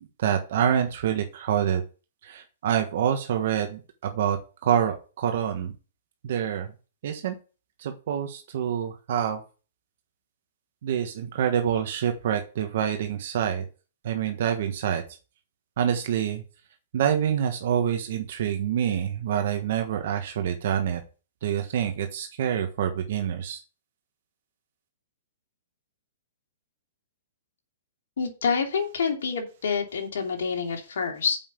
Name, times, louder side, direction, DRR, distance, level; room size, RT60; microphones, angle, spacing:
voice 1, 0.2-1.8 2.2-5.7 6.2-6.7 7.0-7.4 7.8-9.4 10.8-13.6 14.0-15.0 15.8-16.4 16.9-21.0 21.4-23.6, right 9 dB, 60° right, 6 dB, 1.3 m, -26 dB
voice 2, 28.2-31.4, left 5 dB, 75° left, 2 dB, 2.8 m, -27 dB
7.2 x 5.5 x 7.1 m, 0.34 s
hypercardioid pair, 130°, 0 cm